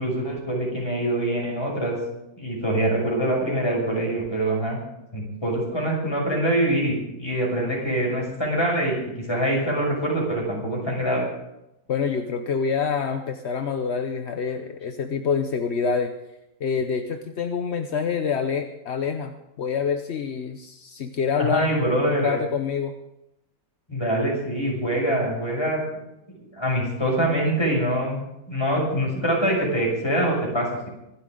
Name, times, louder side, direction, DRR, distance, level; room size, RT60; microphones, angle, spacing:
voice 1, 0.0-2.0 2.4-4.8 5.1-9.0 9.3-11.3 21.4-22.4 23.9-25.8 26.4-28.2 28.5-30.9, right 1 dB, 15° left, -2 dB, 6.6 m, -24 dB
voice 2, 11.9-16.1 16.6-22.9, left 6 dB, 50° left, 6 dB, 0.8 m, -26 dB
25.0 x 12.5 x 3.8 m, 0.88 s
omnidirectional pair, 2.1 m